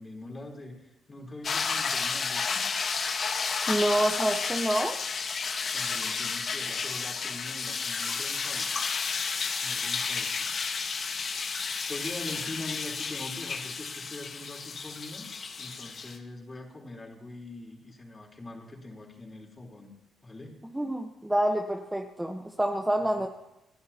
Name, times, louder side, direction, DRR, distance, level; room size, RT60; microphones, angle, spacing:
voice 1, 0.0-2.7 5.7-8.8 9.6-11.3 11.9-15.3 15.6-19.9 20.2-20.6 23.1-23.2, left 2 dB, 25° left, -1 dB, 3.8 m, -43 dB
sound 1, 1.4-16.2, left 5 dB, 50° left, 1.4 m, -32 dB
voice 2, 3.7-4.9 20.7-23.3, right 1 dB, 10° right, 3 dB, 1.0 m, -27 dB
29.0 x 11.0 x 2.9 m, 0.92 s
cardioid pair, 90°, 0 cm